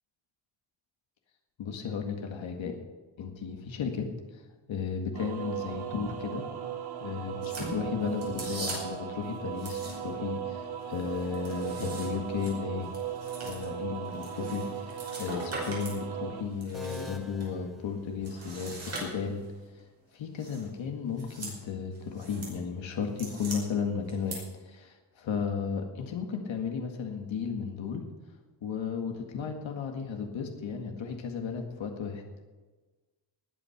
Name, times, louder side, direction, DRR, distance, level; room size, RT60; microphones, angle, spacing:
voice 1, 1.6-2.8 3.2-4.1 4.3-4.4 4.7-6.4 7.0-12.9 13.4-19.4 20.1-28.1 28.6-32.2, left 6 dB, 90° left, 3 dB, 2.0 m, -34 dB
sound 1, 5.1-16.4, right 9 dB, 55° right, 2.1 m, -37 dB
sound 2, 7.4-9.1 9.5-10.3 10.6-16.0 16.4-17.5 18.2-19.5 20.4-20.7 21.1-21.6 21.9-22.5 22.9-23.6 24.1-24.4, right 2 dB, 35° right, 5.5 m, -42 dB
sound 3, 16.7-18.6, left 1 dB, ahead, 0.6 m, -47 dB
19.0 x 8.7 x 6.0 m, 1.3 s
wide cardioid pair, 170°, 45 cm